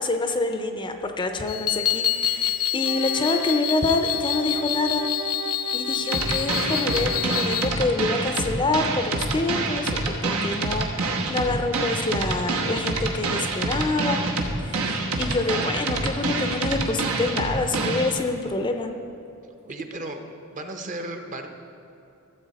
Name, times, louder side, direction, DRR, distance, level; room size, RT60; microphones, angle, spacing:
voice 1, 0.0-5.1 5.7-14.2 14.6-18.9, left 2 dB, 20° left, 6 dB, 0.5 m, -27 dB
sound 1, 1.5-7.7, left 11 dB, 80° left, 0.6 m, -27 dB
Wind instrument woodwind instrument, 2.8-8.0, right 8 dB, 65° right, 0.3 m, -36 dB
sound 2, 6.1-18.1, right 3 dB, 85° right, 1.2 m, -26 dB
voice 2, 19.6-20.2 20.5-21.5, right 2 dB, 35° right, 5 dB, 0.7 m, -34 dB
13.5 x 7.7 x 4.1 m, 2.9 s
head